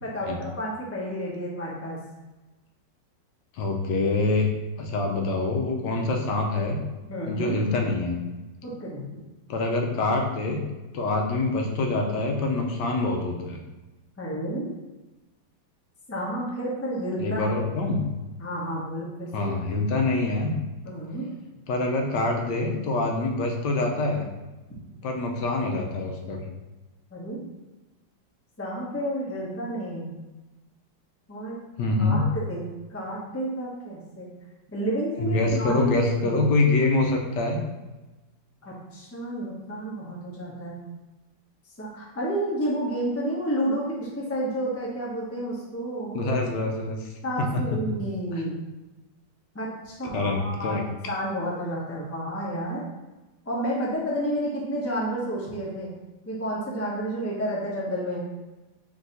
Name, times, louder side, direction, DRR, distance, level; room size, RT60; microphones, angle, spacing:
voice 1, 0.0-2.0 7.1-7.5 8.6-9.2 14.2-14.7 16.1-17.8 18.4-19.5 20.8-21.2 27.1-27.4 28.6-30.1 31.3-31.6 32.0-34.3 34.7-36.5 38.6-40.8 41.8-46.3 47.2-48.6 49.5-52.8 53.5-55.9 56.2-58.2, right 1 dB, 20° left, -5 dB, 0.3 m, -30 dB
voice 2, 3.5-4.5 4.8-6.8 7.3-8.2 9.5-10.6 10.9-13.6 17.2-18.0 19.3-20.5 21.7-24.3 25.0-26.5 31.8-32.2 35.2-37.6 46.1-47.1 47.4-47.9 48.3-48.4 50.1-50.8, left 2 dB, 75° left, 1 dB, 1.2 m, -25 dB
3.8 x 2.7 x 3.9 m, 1.1 s
omnidirectional pair, 2.0 m